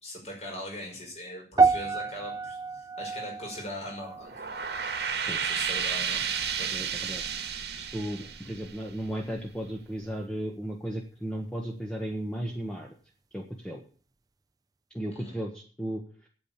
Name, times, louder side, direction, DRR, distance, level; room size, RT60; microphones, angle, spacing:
voice 1, 0.0-4.5 5.4-6.2 6.6-6.8 7.1-7.5 15.1-15.4, left 1 dB, 35° left, 0 dB, 5.8 m, -40 dB
sound 1, 1.6-6.0 6.2-6.6 7.3-7.4, right 4 dB, 20° right, 0.5 m, -29 dB
sound 2, 4.2-9.4, right 7 dB, 70° right, 1.6 m, -32 dB
voice 2, 6.7-7.2 7.8-12.9 13.3-13.8 14.9-16.3, equal, 5° left, 1 dB, 1.4 m, -35 dB
9.2 x 8.6 x 8.9 m, 0.41 s
head